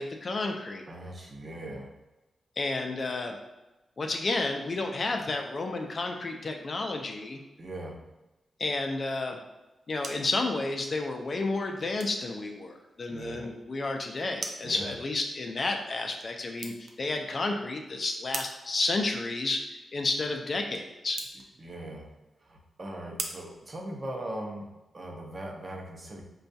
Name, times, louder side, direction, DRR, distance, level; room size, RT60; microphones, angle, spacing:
voice 1, 0.0-0.9 2.6-3.4 4.0-7.4 8.6-9.4 9.9-19.6 19.9-21.2, left 3 dB, 50° left, 3 dB, 0.4 m, -31 dB
voice 2, 0.9-1.9 7.6-8.0 13.1-13.5 14.6-14.9 21.6-22.1 22.4-24.7 24.9-26.2, right 1 dB, 40° right, 0 dB, 0.7 m, -39 dB
sound 1, 9.6-24.5, right 3 dB, 70° right, 0.4 m, -46 dB
4.2 x 2.3 x 2.6 m, 1.0 s
cardioid pair, 80°, 0 cm